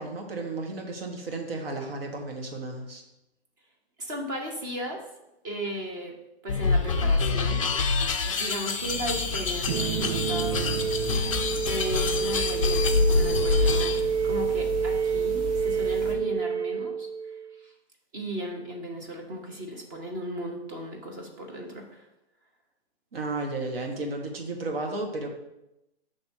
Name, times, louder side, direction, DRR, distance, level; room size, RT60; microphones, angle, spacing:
voice 1, 0.0-3.0 23.1-25.3, right 2 dB, 60° right, 2 dB, 1.5 m, -33 dB
voice 2, 4.0-5.0 5.4-6.1 6.4-7.6 8.2-10.8 11.6-14.0 14.2-17.1 17.6-17.7 18.1-22.0, equal, 15° right, 1 dB, 0.6 m, -36 dB
sound 1, 6.5-14.0, left 4 dB, 30° left, 0.4 m, -26 dB
sound 2, 8.8-16.1, left 3 dB, 40° right, 1.6 m, -36 dB
sound 3, 9.7-17.6, right 7 dB, 90° right, 0.5 m, -28 dB
5.8 x 3.5 x 5.7 m, 0.90 s
hypercardioid pair, 155°, 33 cm